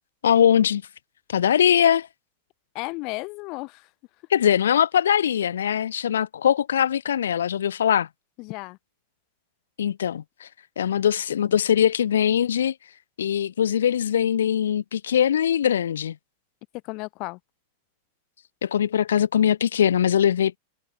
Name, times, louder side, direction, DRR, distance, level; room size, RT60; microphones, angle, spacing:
voice 1, 0.2-0.8 1.3-2.1 4.3-8.1 9.8-10.5 10.8-12.7 13.2-16.2 18.6-20.5, left 9 dB, 65° left, 0.4 m, -21 dB
voice 2, 2.7-3.9 8.4-8.8 16.8-17.4, left 26 dB, 40° left, 3.1 m, -34 dB
figure-of-eight pair, 90°, 0 cm